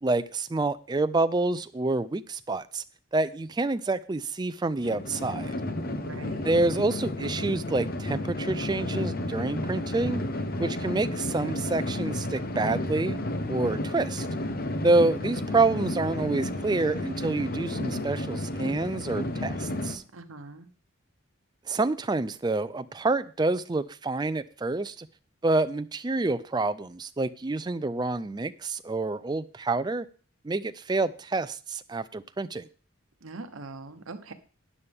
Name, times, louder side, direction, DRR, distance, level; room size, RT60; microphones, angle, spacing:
voice 1, 0.0-2.8 3.1-5.5 6.4-10.2 10.6-13.2 13.5-14.3 14.8-20.0 21.7-25.1 25.4-30.1 30.4-32.7, right 2 dB, 20° right, 13 dB, 0.4 m, -27 dB
sound 1, 4.8-20.0, left 1 dB, 45° left, 0.9 m, -32 dB
voice 2, 5.7-6.5 20.1-20.7 33.2-34.3, right 3 dB, 80° right, 9 dB, 1.1 m, -42 dB
12.5 x 9.7 x 3.5 m, 0.38 s
head